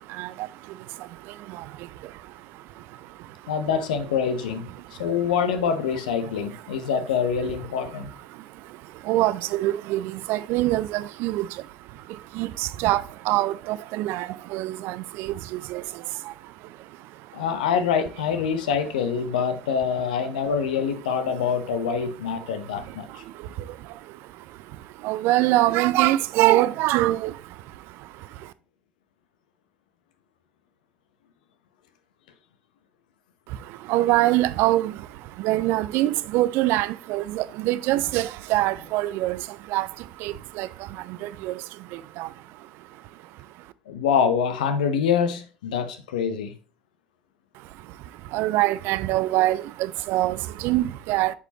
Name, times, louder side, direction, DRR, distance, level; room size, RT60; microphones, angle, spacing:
voice 1, 3.5-4.7 5.0-8.1 17.3-23.2 43.9-46.5, left 7 dB, 75° left, 0.9 m, -25 dB
voice 2, 9.1-11.4 12.4-12.5 12.8-14.3 14.5-15.3 15.7-15.8 25.0-27.3 33.9-34.9 35.4-39.4 39.7-39.9 40.2-40.7 41.4-41.5 42.2-42.3 48.3-49.6 50.1-50.4 50.6-51.3, right 16 dB, 60° right, 0.4 m, -23 dB
8.2 x 5.0 x 2.9 m
figure-of-eight pair, 65°, 5 cm